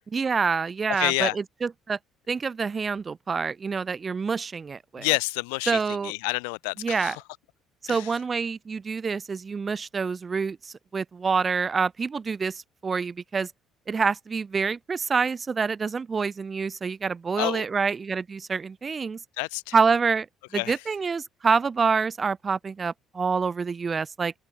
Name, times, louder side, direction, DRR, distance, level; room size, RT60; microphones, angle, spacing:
voice 1, 0.1-2.0 2.3-5.1 5.7-6.1 6.8-7.2 7.8-13.5 13.9-19.2 19.7-20.3 20.5-24.3, right 5 dB, 35° right, 0.8 m, -27 dB
voice 2, 0.9-1.4 5.0-7.2 7.9-8.1 17.4-17.6 19.4-19.7 20.5-20.8, left 36 dB, 80° left, 0.5 m, -28 dB
open air
hypercardioid pair, 55°, 0 cm